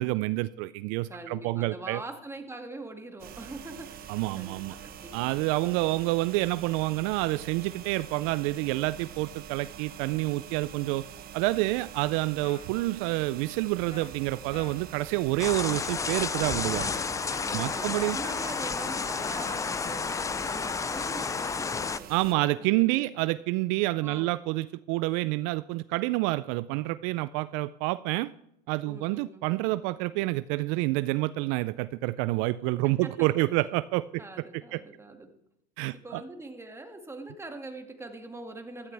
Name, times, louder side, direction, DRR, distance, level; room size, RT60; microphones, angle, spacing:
voice 1, 0.0-2.0 4.1-4.8 5.1-11.0 11.3-16.9 17.5-18.2 22.1-28.3 28.7-34.2 34.7-34.8 35.8-36.2, right 19 dB, 70° right, 16 dB, 0.4 m, -28 dB
voice 2, 1.1-6.3 17.4-20.1 20.4-23.1 24.0-24.4 28.8-29.5 32.8-33.1 34.2-35.3 36.0-38.9, right 2 dB, 10° right, 4 dB, 2.1 m, -43 dB
sound 1, 3.2-22.3, right 9 dB, 45° right, 1.2 m, -45 dB
sound 2, 12.4-12.7 13.9-14.1 14.5-14.8 16.2-16.4 16.8-16.9 17.3-17.5, left 6 dB, 35° left, 1.1 m, -46 dB
sound 3, 15.4-22.0, left 5 dB, 15° left, 0.4 m, -31 dB
15.0 x 13.0 x 3.4 m, 0.80 s
supercardioid pair, 95°, 21 cm